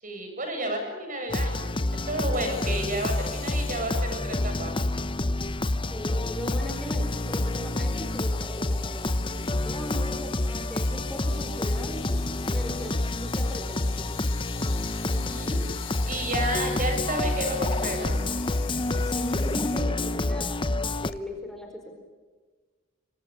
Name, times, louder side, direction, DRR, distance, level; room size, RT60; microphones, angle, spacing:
voice 1, 0.0-4.7 15.1-15.7 16.1-18.2, right 1 dB, 45° right, 5 dB, 7.7 m, -31 dB
sound 1, 1.3-21.1, left 2 dB, 25° left, 0.8 m, -28 dB
sound 2, 2.3-21.2, left 9 dB, 70° left, 3.0 m, -45 dB
voice 2, 5.9-12.9 13.2-14.4 19.1-21.9, equal, ahead, 2 dB, 4.5 m, -39 dB
28.0 x 25.5 x 7.1 m, 1.4 s
head